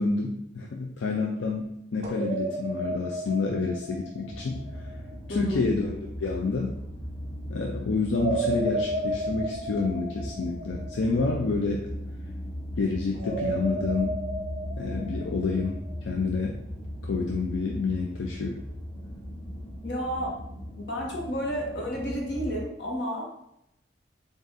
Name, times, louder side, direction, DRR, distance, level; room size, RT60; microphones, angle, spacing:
voice 1, 0.0-4.6 5.3-6.7 7.5-11.8 12.8-14.1 14.8-15.8 16.0-16.6 17.0-18.6, left 3 dB, 85° left, 0 dB, 0.4 m, -28 dB
sound 1, 2.0-5.0 8.1-11.4 13.1-15.9, right 1 dB, 35° right, 0.8 m, -33 dB
sound 2, 4.2-22.6, equal, 10° left, 1.4 m, -38 dB
voice 2, 5.3-5.6 19.8-20.4 20.8-23.3, equal, 65° left, -1 dB, 1.1 m, -31 dB
3.6 x 2.5 x 3.9 m, 0.78 s
head